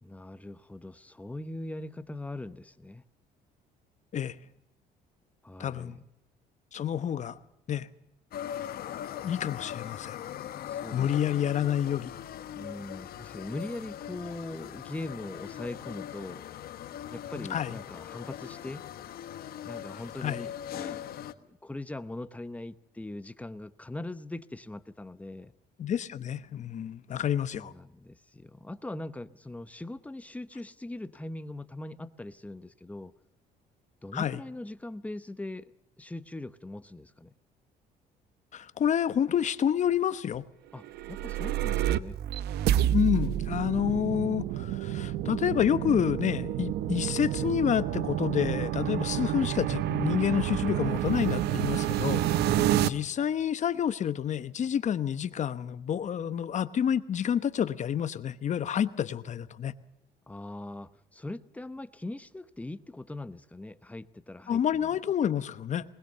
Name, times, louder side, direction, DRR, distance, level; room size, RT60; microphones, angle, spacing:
voice 1, 0.0-3.0 5.4-6.0 10.7-11.7 12.5-16.4 17.1-18.9 19.6-25.5 27.5-33.1 34.0-35.7 36.0-37.3 40.7-42.2 52.4-53.2 60.3-64.9, left 2 dB, 10° left, 0.9 m, -41 dB
voice 2, 5.6-6.0 6.7-7.4 7.7-7.9 9.2-10.2 10.9-12.1 17.3-17.8 20.2-20.4 25.8-27.7 34.1-34.4 38.5-40.4 42.9-52.2 52.8-59.7 64.5-65.8, left 9 dB, 45° left, 1.0 m, -29 dB
sound 1, 8.3-21.3, left 11 dB, 65° left, 1.3 m, -40 dB
sound 2, 40.8-52.9, right 12 dB, 75° right, 0.8 m, -29 dB
21.0 x 20.0 x 6.8 m
cardioid pair, 110°, 17 cm